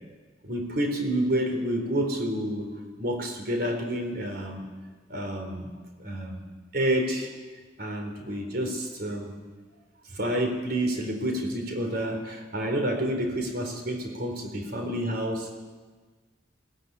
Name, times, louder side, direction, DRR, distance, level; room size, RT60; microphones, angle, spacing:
voice 1, 0.4-2.7 3.0-4.6 5.1-5.7 6.0-6.4 6.7-7.3 7.8-9.3 10.1-15.5, right 1 dB, 60° right, 4 dB, 4.0 m, -29 dB
21.5 x 18.5 x 9.8 m, 1.4 s
head